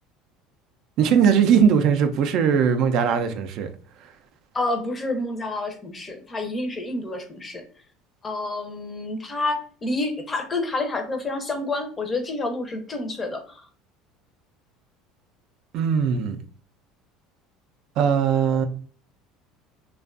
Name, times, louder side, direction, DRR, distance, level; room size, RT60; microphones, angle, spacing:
voice 1, 1.0-3.7 15.7-16.4 18.0-18.7, right 7 dB, 60° right, 0.3 m, -20 dB
voice 2, 4.5-7.6 8.2-13.7, left 2 dB, 25° left, 0.5 m, -29 dB
2.5 x 2.2 x 2.3 m
supercardioid pair, 100°, 0 cm